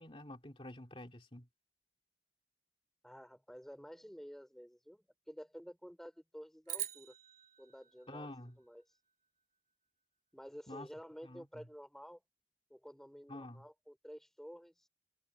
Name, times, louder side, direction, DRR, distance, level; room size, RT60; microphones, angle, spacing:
voice 1, 0.0-1.5 8.1-8.6 10.7-10.9 11.2-11.7 13.3-13.6, left 1 dB, 25° left, 2.5 m, -49 dB
voice 2, 3.0-7.2 7.6-8.3 8.6-8.8 10.3-12.2 12.7-14.9, equal, ahead, 3.9 m, -51 dB
sound 1, 6.7-9.1, right 11 dB, 40° right, 3.0 m, -45 dB
head